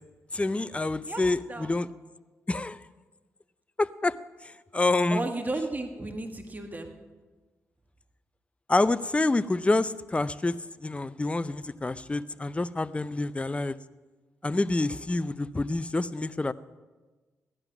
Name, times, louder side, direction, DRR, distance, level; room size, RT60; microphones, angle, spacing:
voice 1, 0.3-1.9 2.5-2.8 3.8-4.2 4.7-5.2 8.7-10.6 10.8-13.8 14.4-16.5, left 2 dB, 20° left, 16 dB, 0.6 m, -27 dB
voice 2, 1.1-1.7 5.1-6.9, right 2 dB, 30° right, 5 dB, 1.7 m, -34 dB
16.0 x 11.0 x 6.0 m, 1.3 s
cardioid pair, 70°, 6 cm